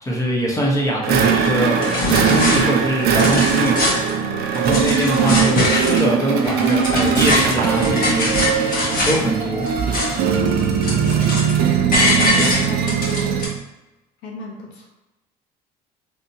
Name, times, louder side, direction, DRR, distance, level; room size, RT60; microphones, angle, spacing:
voice 1, 0.0-8.8 9.0-9.7, equal, 15° left, -3 dB, 1.2 m, -23 dB
sound 1, 1.0-13.6, right 7 dB, 60° right, 0.5 m, -20 dB
sound 2, 1.4-1.5 1.8-2.6 3.0-4.1 4.5-6.1 6.4-9.2 9.6-10.3 10.6-11.6 11.9-13.5, left 2 dB, 50° left, 1.4 m, -22 dB
voice 2, 12.1-13.4 14.2-14.9, left 3 dB, 70° left, -2 dB, 0.8 m, -33 dB
3.3 x 2.7 x 2.8 m, 1.0 s
supercardioid pair, 75°, 18 cm